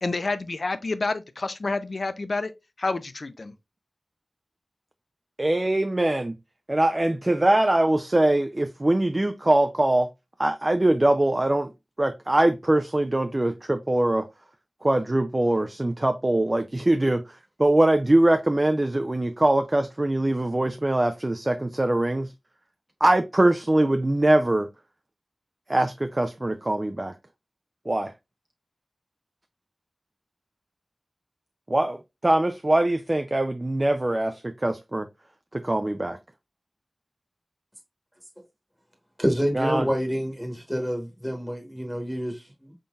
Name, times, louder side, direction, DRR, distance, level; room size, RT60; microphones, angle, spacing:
voice 1, 0.0-2.5 2.8-3.5, left 3 dB, 65° left, 0.4 m, -28 dB
voice 2, 5.4-6.3 6.7-10.1 10.4-11.7 12.0-14.3 14.8-17.2 17.6-22.3 23.0-24.7 25.7-27.1 27.9-28.1 31.7-35.1 35.5-36.2 39.5-39.9, right 1 dB, 30° right, 0.3 m, -22 dB
voice 3, 39.2-42.7, equal, ahead, 1.1 m, -28 dB
3.9 x 3.7 x 2.3 m
wide cardioid pair, 50°, 0 cm